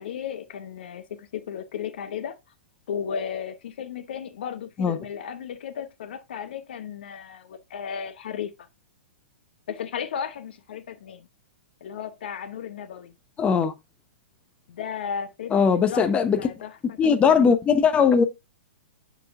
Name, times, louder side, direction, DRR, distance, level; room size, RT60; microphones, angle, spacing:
voice 1, 0.0-2.4 2.9-8.7 9.7-11.3 11.8-13.1 14.7-16.1 16.4-17.0, left 7 dB, 60° left, 0.8 m, -34 dB
voice 2, 13.4-13.7 15.5-16.4 17.0-18.2, left 6 dB, 20° left, 0.7 m, -19 dB
11.0 x 4.1 x 2.5 m
figure-of-eight pair, 110°, 6 cm